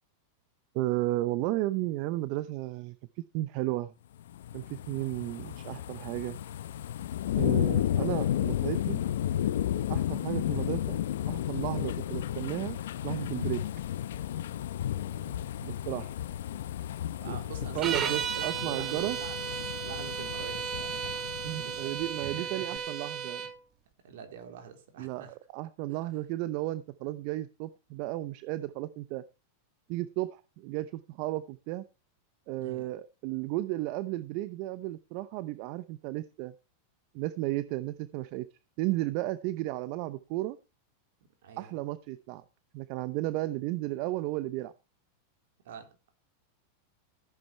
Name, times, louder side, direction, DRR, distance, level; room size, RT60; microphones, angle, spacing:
voice 1, 0.7-3.0 3.3-3.9 4.5-6.4 7.4-9.0 9.9-12.8 13.0-13.6 15.6-16.1 17.3-17.4 17.7-19.2 21.4-23.4 25.0-29.2 29.9-31.8 32.5-36.5 37.1-38.5 38.8-40.6 41.6-42.4 42.7-44.7, right 17 dB, 55° right, 0.7 m, -33 dB
sound 1, 4.2-22.3 22.8-22.9, left 11 dB, 80° left, 0.7 m, -33 dB
sound 2, 9.7-19.1, left 15 dB, 55° left, 3.7 m, -54 dB
voice 2, 15.1-15.5 17.2-19.4 19.8-22.8 23.2-23.5 24.0-25.4 25.9-26.2 32.6-32.9 41.4-41.8 45.6-45.9, right 6 dB, 75° right, 3.7 m, -46 dB
sound 3, 17.8-23.5, right 8 dB, 35° right, 1.7 m, -34 dB
14.5 x 8.8 x 4.5 m
hypercardioid pair, 120°, 0 cm